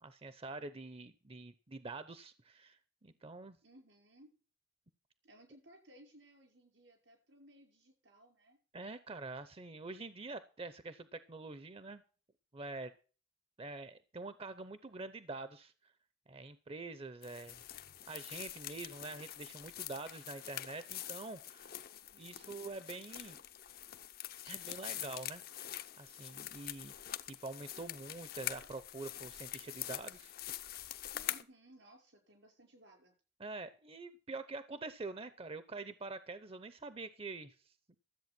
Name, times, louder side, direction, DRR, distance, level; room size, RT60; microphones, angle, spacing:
voice 1, 0.0-3.6 8.7-12.0 12.5-12.9 13.6-15.7 16.3-17.6 18.1-21.7 22.2-23.4 24.5-25.4 26.0-26.9 27.3-30.3 31.1-31.3 33.4-37.7, right 3 dB, 30° right, 13 dB, 0.7 m, -46 dB
voice 2, 3.6-4.3 5.2-8.6 21.8-22.6 31.1-33.1, right 1 dB, 85° right, 4 dB, 5.3 m, -61 dB
sound 1, 17.2-31.4, left 12 dB, 55° left, 0.7 m, -45 dB
13.5 x 8.0 x 6.0 m, 0.38 s
head